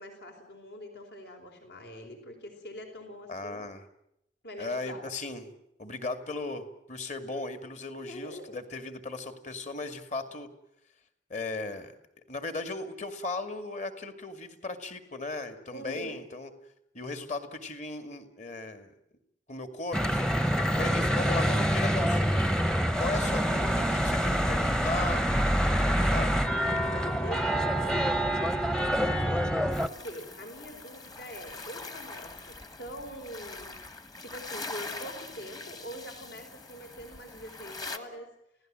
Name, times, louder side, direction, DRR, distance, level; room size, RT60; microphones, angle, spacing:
voice 1, 0.0-3.7 4.4-5.0 8.0-8.6 15.7-16.2 26.0-26.2 26.7-33.7 34.2-38.3, equal, 65° left, 4 dB, 4.7 m, -44 dB
voice 2, 3.3-3.8 4.6-5.5 5.8-10.5 11.3-11.9 12.3-16.5 16.9-18.9 19.5-22.5 23.0-25.3 25.9-26.4, left 3 dB, 40° left, 8 dB, 2.4 m, -37 dB
Church bell / Traffic noise roadway noise, 19.9-29.9, equal, 5° left, 1.0 m, -26 dB
sound 1, 29.7-38.0, left 3 dB, 20° left, 1.5 m, -43 dB
29.5 x 17.0 x 7.7 m, 0.80 s
head